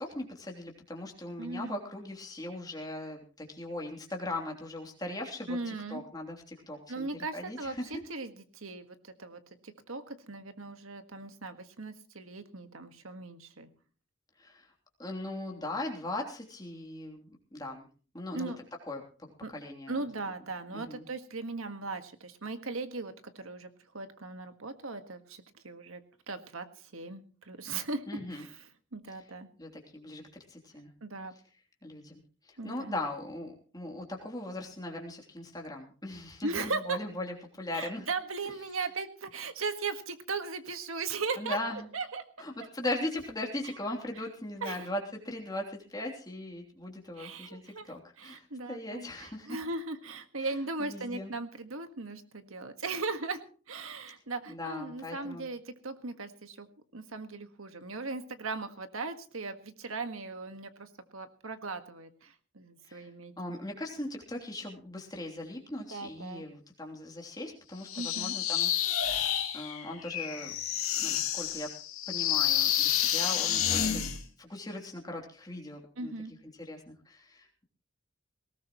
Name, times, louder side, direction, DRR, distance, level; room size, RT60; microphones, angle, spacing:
voice 1, 0.0-8.0 14.4-14.7 15.0-17.9 18.1-18.5 18.9-20.1 20.7-21.1 28.1-28.4 29.1-29.2 29.6-30.2 30.5-30.9 31.8-38.1 41.4-41.9 42.4-49.6 50.4-51.3 54.5-55.5 62.8-63.1 63.4-68.7 69.5-70.5 70.9-71.7 72.1-76.1 76.5-77.6, left 1 dB, 20° left, 1 dB, 3.1 m, -39 dB
voice 2, 1.4-1.8 5.5-6.0 6.9-13.7 18.3-18.6 19.4-19.5 19.9-26.0 26.3-28.6 28.9-29.5 31.0-31.3 32.6-33.0 36.4-37.0 37.7-41.6 41.9-42.2 44.6-44.9 47.2-47.9 48.2-53.4 53.7-56.7 56.9-63.6 65.9-66.4 68.0-68.4 76.0-76.3, right 3 dB, 80° right, 8 dB, 1.6 m, -38 dB
sound 1, 67.9-74.2, left 10 dB, 80° left, 2.4 m, -29 dB
19.5 x 17.5 x 3.1 m, 0.39 s
head